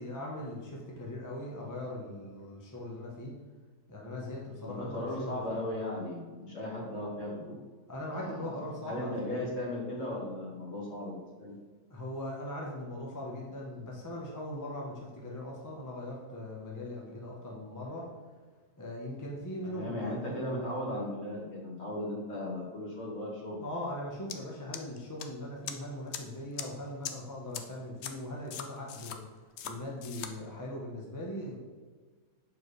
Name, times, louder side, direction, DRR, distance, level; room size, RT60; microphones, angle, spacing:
voice 1, 0.0-3.4 3.9-5.6 7.9-9.1 11.9-18.1 18.8-20.1 23.6-29.2 29.6-31.6, left 1 dB, 15° left, -3 dB, 0.7 m, -40 dB
voice 2, 4.6-7.6 8.1-11.5 19.6-23.7, left 1 dB, 45° left, -5 dB, 2.0 m, -37 dB
sound 1, 24.3-24.4 24.7-25.2 25.7-25.8 26.1-26.2 26.6-26.7 27.0-27.1 27.5-27.6 28.0-28.1 28.5-29.2 29.6-29.7 30.0-30.3, left 9 dB, 70° left, 0.6 m, -38 dB
6.7 x 4.6 x 3.2 m, 1.4 s
omnidirectional pair, 1.7 m